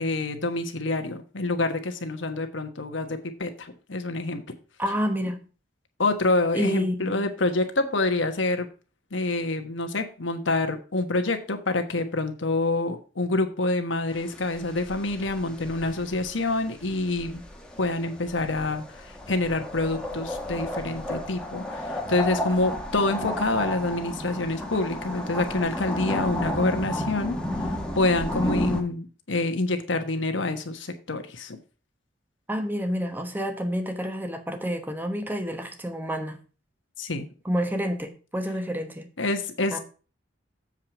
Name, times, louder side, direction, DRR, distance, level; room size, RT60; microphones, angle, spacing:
voice 1, 0.0-4.4 6.0-8.7 9.1-17.4 17.8-27.4 27.9-31.6 37.0-37.3 39.2-39.8, left 2 dB, 85° left, 7 dB, 1.3 m, -27 dB
voice 2, 4.8-5.5 6.5-7.3 32.5-36.4 37.4-39.1 39.7-39.8, equal, 10° right, 5 dB, 1.1 m, -29 dB
sound 1, 14.1-28.8, left 1 dB, 5° left, 1.3 m, -33 dB
7.5 x 4.8 x 5.9 m, 0.36 s
head